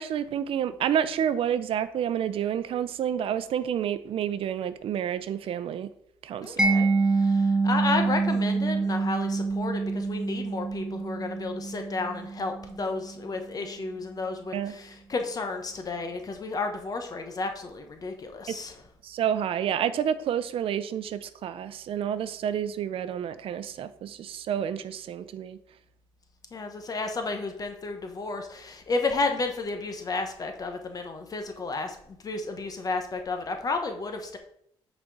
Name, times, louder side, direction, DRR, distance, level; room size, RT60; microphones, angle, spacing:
voice 1, 0.0-5.9 6.2-6.6 14.5-14.8 18.5-18.6 19.0-25.6, right 9 dB, 70° right, 12 dB, 0.6 m, -29 dB
voice 2, 6.4-6.9 7.2-18.7 26.5-32.0 32.2-34.4, left 3 dB, 40° left, 5 dB, 1.1 m, -32 dB
Mallet percussion, 6.6-13.4, right 4 dB, 5° right, 1.0 m, -26 dB
8.8 x 4.3 x 4.7 m, 0.68 s
cardioid pair, 110°, 10 cm